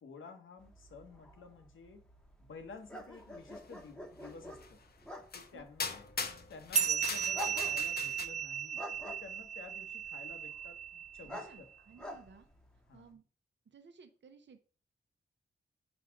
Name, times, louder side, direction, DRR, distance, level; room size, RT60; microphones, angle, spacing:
voice 1, 0.0-2.0 2.4-4.8 5.3-6.0 6.5-11.7 12.9-13.2, left 4 dB, 80° left, 1.2 m, -52 dB
sound 1, 0.6-13.1, equal, 5° left, 0.9 m, -49 dB
sound 2, 4.6-4.7 5.3-5.5 5.8-8.3, left 5 dB, 50° left, 0.7 m, -40 dB
voice 2, 5.5-5.9 11.2-12.5 12.9-13.2 13.7-14.6, right 5 dB, 65° right, 0.8 m, -57 dB
sound 3, 6.7-11.6, right 8 dB, 35° right, 0.4 m, -36 dB
5.0 x 4.2 x 5.9 m
wide cardioid pair, 110°, 20 cm